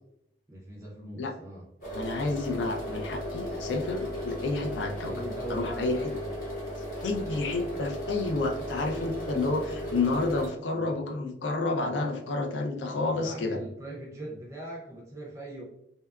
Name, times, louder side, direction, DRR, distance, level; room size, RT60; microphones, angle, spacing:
voice 1, 0.5-1.7 5.0-6.3 10.7-11.0 13.1-15.6, right 1 dB, 15° right, -4 dB, 0.4 m, -41 dB
sound 1, 1.8-10.5, equal, 45° left, 0.9 m, -36 dB
voice 2, 1.9-6.1 7.0-13.6, left 3 dB, 85° left, 3 dB, 0.4 m, -30 dB
2.7 x 2.2 x 2.3 m, 0.82 s
head